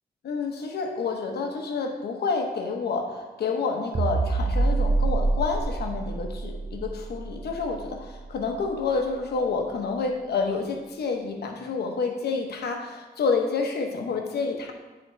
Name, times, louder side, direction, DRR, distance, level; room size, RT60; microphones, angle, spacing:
voice 1, 0.2-14.7, left 4 dB, 85° left, 3 dB, 1.0 m, -29 dB
Sub Down, 3.9-8.4, right 3 dB, 30° right, 0.7 m, -26 dB
9.9 x 3.8 x 4.5 m, 1.2 s
cardioid pair, 95°, 16 cm